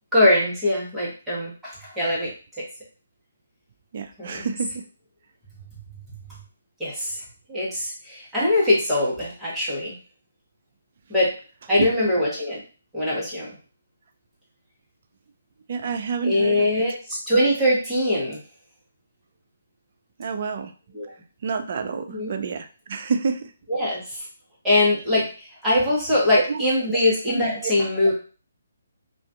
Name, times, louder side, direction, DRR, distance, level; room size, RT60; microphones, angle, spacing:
voice 1, 0.1-2.3 2.6-2.7 4.2-4.5 6.8-7.2 7.5-10.0 11.1-11.3 11.7-12.6 12.9-13.5 16.2-18.4 20.9-21.1 22.1-22.3 23.7-24.3 24.6-28.1, left 1 dB, 5° right, -8 dB, 1.0 m, -22 dB
voice 2, 3.9-4.8 11.8-11.9 15.7-16.7 20.2-20.7 21.4-23.5 26.4-26.6 26.9-27.0 27.3-27.7, right 5 dB, 45° right, 7 dB, 0.3 m, -28 dB
2.4 x 2.3 x 2.3 m, 0.37 s
figure-of-eight pair, 140°, 0 cm